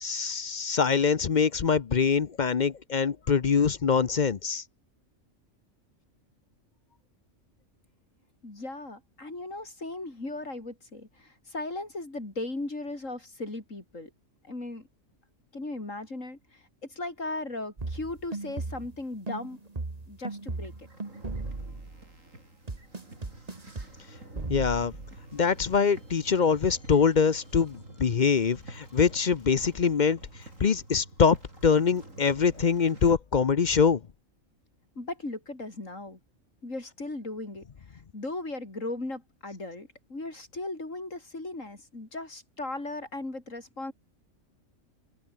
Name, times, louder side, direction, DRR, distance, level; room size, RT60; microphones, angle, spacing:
voice 1, 0.0-4.6 24.5-24.9 25.3-30.2 30.6-31.4 31.6-34.0, left 6 dB, 40° left, 0.8 m, -24 dB
voice 2, 8.4-14.1 14.4-14.9 15.5-19.6 20.1-20.9 35.0-36.2 36.6-43.9, left 2 dB, 75° left, 5.6 m, -37 dB
sound 1, 17.8-19.0 19.3-22.1 22.7-23.9 24.4-25.2, right 3 dB, 30° right, 2.0 m, -37 dB
sound 2, 20.5-33.1, right 2 dB, 80° right, 7.5 m, -49 dB
omnidirectional pair, 1.3 m